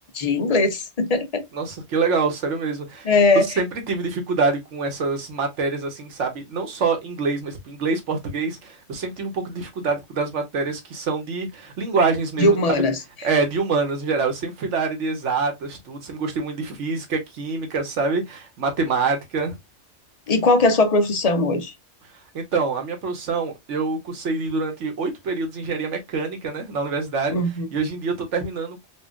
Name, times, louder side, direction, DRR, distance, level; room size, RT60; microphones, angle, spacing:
voice 1, 0.1-1.4 3.0-3.5 12.4-13.0 20.3-21.7 27.3-27.7, left 2 dB, 40° left, 0.6 m, -19 dB
voice 2, 1.5-12.8 13.2-19.6 22.3-28.9, right 4 dB, 80° right, 1.3 m, -26 dB
4.3 x 2.4 x 2.2 m
omnidirectional pair, 1.2 m